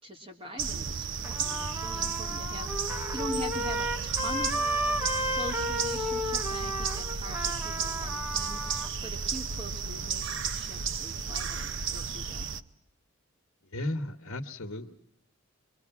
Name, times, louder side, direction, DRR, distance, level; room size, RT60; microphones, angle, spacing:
voice 1, 0.0-4.5 5.3-12.5, right 1 dB, 25° right, 2 dB, 3.1 m, -42 dB
sound 1, 0.6-12.6, right 6 dB, 60° right, 0.8 m, -33 dB
Trumpet, 1.2-8.9, equal, 10° right, 1.5 m, -33 dB
voice 2, 13.6-14.9, left 1 dB, 80° left, 3 dB, 1.4 m, -35 dB
24.5 x 24.0 x 5.9 m, 0.76 s
head